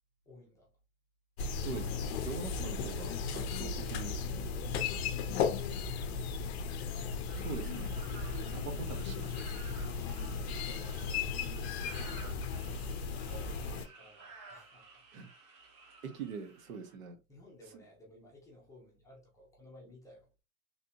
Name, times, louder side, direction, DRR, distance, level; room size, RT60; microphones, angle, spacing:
voice 1, 0.3-0.7 10.2-12.0 13.2-14.9 17.3-20.3, left 1 dB, 5° left, 0.8 m, -57 dB
sound 1, 1.4-13.9, left 5 dB, 50° left, 0.6 m, -36 dB
voice 2, 1.6-4.1 7.3-8.0 8.5-9.4 15.1-15.3 16.0-17.2, right 5 dB, 65° right, 1.1 m, -43 dB
sound 2, 7.3-17.0, right 4 dB, 45° right, 1.2 m, -55 dB
3.4 x 2.7 x 2.7 m
hypercardioid pair, 145°, 43 cm